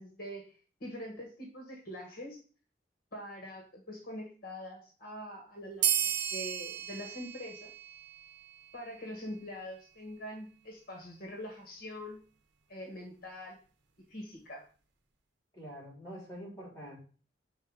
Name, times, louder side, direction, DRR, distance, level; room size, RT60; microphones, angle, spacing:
voice 1, 0.0-2.4 3.1-7.7 8.7-12.2 12.7-13.6 14.1-14.7, equal, 55° left, 1 dB, 1.4 m, -44 dB
sound 1, 5.8-8.9, right 10 dB, 90° right, 0.8 m, -34 dB
voice 2, 15.5-17.0, equal, 20° left, -6 dB, 3.4 m, -45 dB
5.7 x 4.2 x 4.7 m, 0.40 s
head